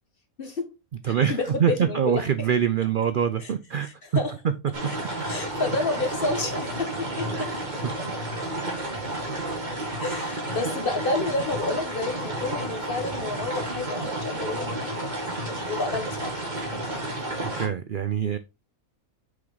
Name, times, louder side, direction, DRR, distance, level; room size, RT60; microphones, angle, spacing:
voice 1, 0.4-0.7 1.0-2.5 3.4-3.5 3.8-4.3 4.9-5.0 5.3-7.5 10.0-15.1 15.7-16.3, left 3 dB, 45° left, 1.2 m, -30 dB
voice 2, 1.0-3.9 5.2-5.4 7.3-7.4 17.2-18.4, right 8 dB, 75° right, 0.4 m, -25 dB
sound 1, 4.7-17.7, right 1 dB, 30° right, 1.8 m, -31 dB
6.3 x 4.5 x 3.9 m
omnidirectional pair, 1.5 m